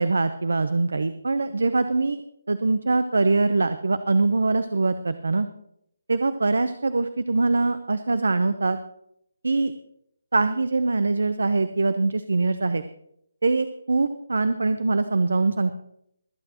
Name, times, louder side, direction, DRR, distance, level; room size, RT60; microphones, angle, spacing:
voice 1, 0.0-2.2 2.5-5.5 6.1-8.8 9.4-9.7 10.3-12.8 13.4-15.8, right 3 dB, 75° right, 12 dB, 0.7 m, -23 dB
25.0 x 8.7 x 3.0 m, 0.74 s
figure-of-eight pair, 150°, 0 cm